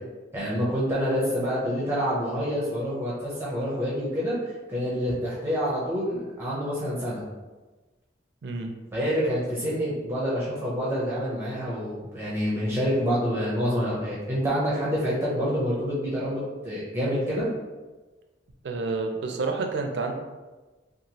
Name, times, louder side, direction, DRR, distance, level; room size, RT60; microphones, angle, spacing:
voice 1, 0.3-4.4 4.7-7.2 8.9-17.5, equal, 15° right, -8 dB, 0.5 m, -27 dB
voice 2, 18.6-20.1, right 3 dB, 65° right, 3 dB, 0.4 m, -29 dB
2.9 x 2.3 x 2.7 m, 1.2 s
head